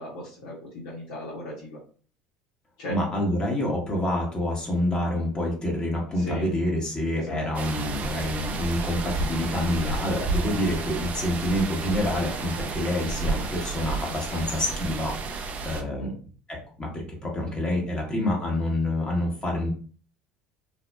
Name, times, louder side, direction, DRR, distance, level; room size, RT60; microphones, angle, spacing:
voice 1, 0.0-1.8 2.8-3.0 6.2-6.5 7.2-7.5 16.0-16.2, equal, 80° left, -6 dB, 1.0 m, -36 dB
voice 2, 2.9-16.1 16.5-19.7, left 1 dB, 25° left, -2 dB, 1.1 m, -27 dB
sound 1, 7.5-15.8, right 3 dB, 45° right, 0.5 m, -31 dB
2.7 x 2.3 x 2.2 m, 0.41 s
hypercardioid pair, 80°, 4 cm